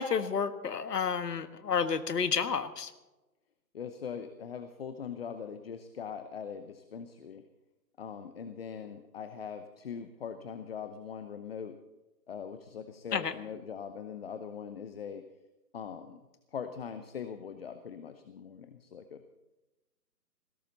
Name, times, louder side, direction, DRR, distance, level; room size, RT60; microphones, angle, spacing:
voice 1, 0.0-2.9 13.1-13.3, left 6 dB, 70° left, 11 dB, 1.6 m, -30 dB
voice 2, 3.7-7.4 8.0-11.8 12.3-15.3 15.7-16.2 16.5-19.2, left 7 dB, 35° left, 10 dB, 0.9 m, -41 dB
20.5 x 17.0 x 4.1 m, 1.1 s
hypercardioid pair, 155°, 49 cm